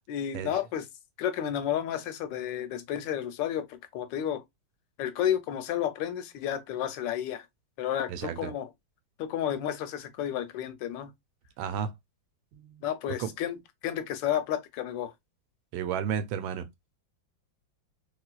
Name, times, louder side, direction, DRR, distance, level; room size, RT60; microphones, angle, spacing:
voice 1, 0.1-0.9 1.2-4.4 5.0-7.5 7.8-8.7 9.2-11.1 12.8-13.6 13.8-15.1, left 10 dB, 75° left, 1.2 m, -31 dB
voice 2, 8.1-8.5 11.6-11.9 12.5-12.9 13.2-13.3 15.7-16.7, right 8 dB, 90° right, 1.4 m, -32 dB
3.2 x 3.0 x 2.3 m
omnidirectional pair, 2.1 m